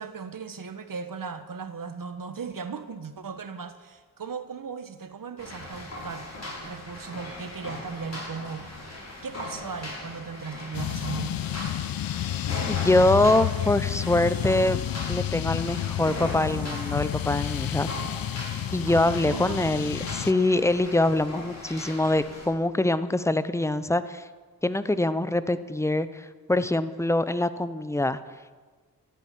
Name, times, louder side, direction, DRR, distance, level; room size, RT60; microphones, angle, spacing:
voice 1, 0.0-6.3 6.6-8.7 9.2-11.4 18.8-19.6, right 5 dB, 60° right, 9 dB, 1.4 m, -37 dB
sound 1, 5.4-22.5, left 1 dB, 45° left, 5.9 m, -39 dB
sound 2, 10.7-20.3, left 12 dB, 70° left, 0.5 m, -30 dB
voice 2, 12.7-14.8 15.1-17.9 18.7-24.2 24.6-28.2, left 2 dB, 10° left, 13 dB, 0.8 m, -24 dB
13.5 x 11.0 x 8.5 m, 1.4 s
cardioid pair, 70°, 37 cm